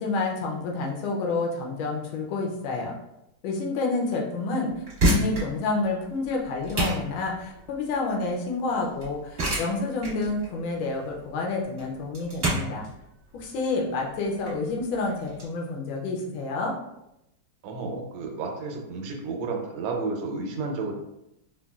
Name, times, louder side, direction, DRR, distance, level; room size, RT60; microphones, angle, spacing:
voice 1, 0.0-2.9 3.4-4.7 5.0-12.8 13.3-16.7, left 3 dB, 80° left, 0 dB, 1.4 m, -29 dB
sound 1, 4.8-15.5, right 1 dB, 40° right, 1.4 m, -30 dB
voice 2, 17.6-20.9, right 4 dB, 90° right, 3 dB, 1.4 m, -31 dB
3.9 x 2.2 x 2.3 m, 0.86 s
omnidirectional pair, 2.3 m